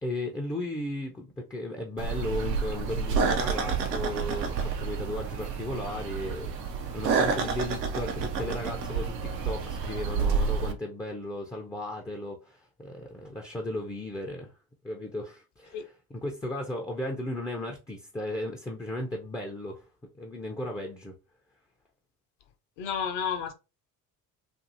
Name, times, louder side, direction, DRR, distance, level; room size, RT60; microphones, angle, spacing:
voice 1, 0.0-6.5 6.9-14.6 14.8-19.9 20.2-21.2, left 1 dB, 10° left, 0.4 m, -35 dB
sound 1, 2.0-10.7, right 5 dB, 90° right, 0.5 m, -29 dB
voice 2, 22.8-23.5, left 7 dB, 60° left, 0.7 m, -31 dB
2.6 x 2.6 x 2.5 m
hypercardioid pair, 60°, 47 cm